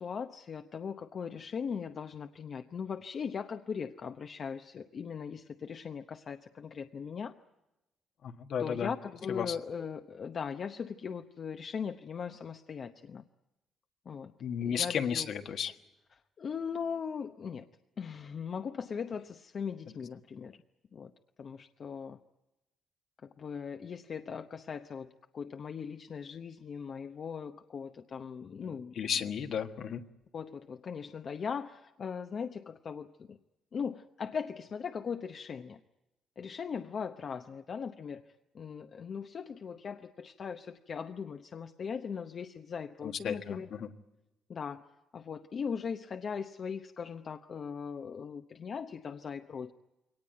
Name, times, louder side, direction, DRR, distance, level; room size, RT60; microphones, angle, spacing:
voice 1, 0.0-7.3 8.6-13.2 14.1-14.3 14.7-15.3 16.4-17.7 18.0-20.6 20.9-21.1 21.4-22.2 23.2-25.1 25.3-28.9 30.3-33.4 33.7-35.8 36.4-38.2 38.5-43.7 44.5-44.8 45.1-49.7, left 6 dB, 50° left, 7 dB, 0.8 m, -39 dB
voice 2, 8.2-8.9 9.3-9.6 14.4-15.7 28.6-30.0 43.0-43.9, left 8 dB, 65° left, 7 dB, 1.4 m, -34 dB
22.5 x 18.5 x 9.1 m, 0.97 s
cardioid pair, 90°, 0 cm